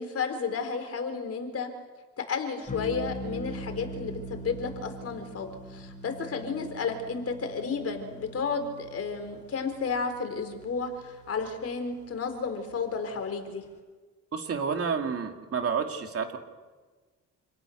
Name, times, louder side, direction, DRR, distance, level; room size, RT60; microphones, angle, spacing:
voice 1, 0.0-1.7 2.2-13.6, left 5 dB, 50° left, 6 dB, 4.3 m, -32 dB
sound 1, 2.7-13.2, right 1 dB, 25° left, 4.4 m, -43 dB
voice 2, 14.3-16.4, right 6 dB, 50° right, 4 dB, 3.0 m, -30 dB
28.5 x 18.0 x 6.7 m, 1.3 s
cardioid pair, 90°, 30 cm